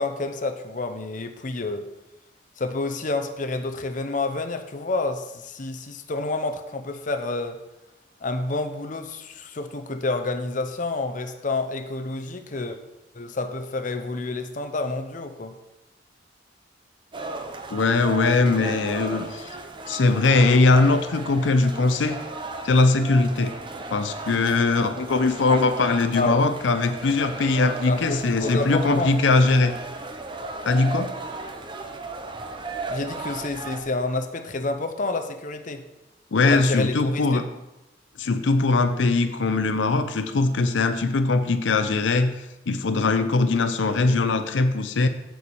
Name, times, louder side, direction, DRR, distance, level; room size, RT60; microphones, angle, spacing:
voice 1, 0.0-1.9 2.6-7.6 8.2-12.8 13.1-15.5 26.2-26.5 27.9-29.1 32.9-35.8 36.4-37.4, left 3 dB, 45° left, 7 dB, 0.7 m, -29 dB
sound 1, 17.1-33.8, right 3 dB, 25° right, 0.7 m, -35 dB
voice 2, 17.7-19.5 19.9-22.2 22.6-23.5 23.9-29.7 30.6-31.1 36.3-37.4 38.2-45.1, left 3 dB, 80° left, 9 dB, 0.6 m, -21 dB
8.2 x 4.7 x 7.0 m, 0.96 s
head